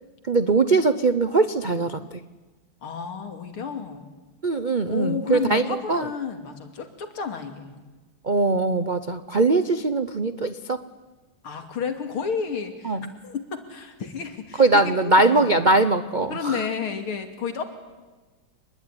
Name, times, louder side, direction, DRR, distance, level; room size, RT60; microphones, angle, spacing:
voice 1, 0.3-2.2 4.4-6.1 8.2-10.8 12.8-13.1 14.6-16.6, right 3 dB, 60° right, 11 dB, 0.4 m, -21 dB
voice 2, 2.8-4.1 4.9-7.8 11.4-15.6 16.3-17.6, left 6 dB, 75° left, 7 dB, 3.4 m, -31 dB
26.5 x 21.0 x 10.0 m, 1.2 s
omnidirectional pair, 2.4 m